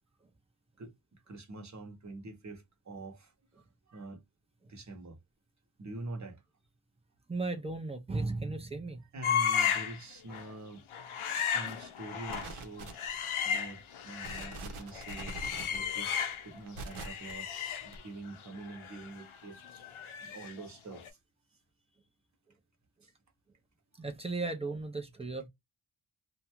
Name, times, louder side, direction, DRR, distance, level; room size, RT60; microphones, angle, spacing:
voice 1, 1.3-3.3 3.9-4.2 4.7-5.2 5.8-6.4 9.1-10.8 11.3-12.9 13.4-16.2 16.4-19.8 20.2-21.2, right 2 dB, 35° right, 1.0 m, -45 dB
voice 2, 7.3-9.0 24.0-25.5, right 3 dB, 15° right, 0.5 m, -35 dB
sound 1, 9.2-10.0 10.3-10.5 10.9-14.6 14.9-16.6 16.9-20.7 20.9-21.1, left 8 dB, 85° left, 0.6 m, -34 dB
sound 2, 12.3-13.3 13.8-13.9 14.2-17.3 17.9-18.0, right 2 dB, 85° right, 0.9 m, -43 dB
2.5 x 2.3 x 2.9 m
wide cardioid pair, 145°, 48 cm